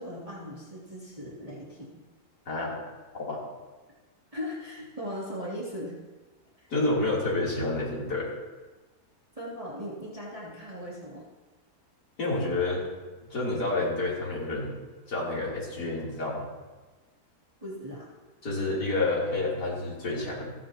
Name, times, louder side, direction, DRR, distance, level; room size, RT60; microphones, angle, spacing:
voice 1, 0.0-1.9 4.3-5.9 6.6-6.7 9.4-11.2 17.6-18.1, equal, 20° right, -7 dB, 3.0 m, -38 dB
voice 2, 2.5-2.8 3.2-3.4 6.7-8.3 12.2-12.8 13.3-14.8 15.1-16.4 18.4-20.5, left 2 dB, 90° left, -6 dB, 4.0 m, -29 dB
29.0 x 9.9 x 2.9 m, 1.2 s
omnidirectional pair, 1.7 m